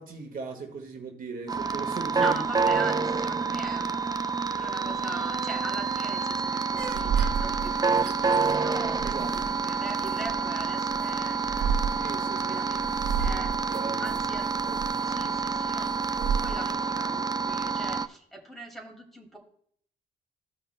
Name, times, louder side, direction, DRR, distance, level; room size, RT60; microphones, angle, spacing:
voice 1, 0.0-2.4 9.0-9.3 11.9-12.6 13.7-14.2 14.6-14.8, right 4 dB, 45° right, 2 dB, 1.6 m, -38 dB
sound 1, 1.5-18.1, right 5 dB, 20° right, 0.4 m, -28 dB
voice 2, 2.2-4.0 4.3-9.0 9.3-11.9 12.2-12.8 13.2-13.5 14.0-14.5 15.0-19.4, right 2 dB, ahead, -2 dB, 2.3 m, -40 dB
sound 2, 6.7-16.7, right 7 dB, 80° right, 1.6 m, -32 dB
15.0 x 5.7 x 2.2 m, 0.63 s
cardioid pair, 90°, 20 cm